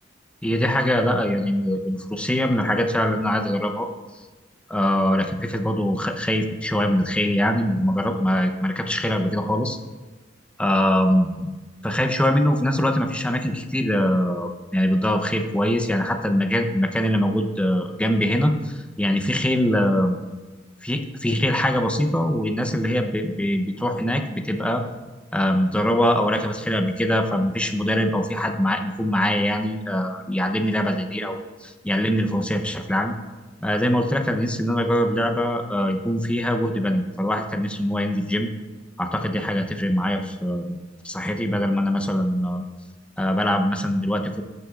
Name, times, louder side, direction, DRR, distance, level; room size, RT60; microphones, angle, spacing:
voice 1, 0.4-3.9 4.7-9.8 10.6-11.5 11.8-20.2 20.8-24.8 25.3-33.1 33.6-38.5 39.0-40.8 41.0-42.6 43.2-44.4, equal, 5° left, 4 dB, 0.8 m, -23 dB
14.0 x 9.6 x 2.5 m, 1.3 s
head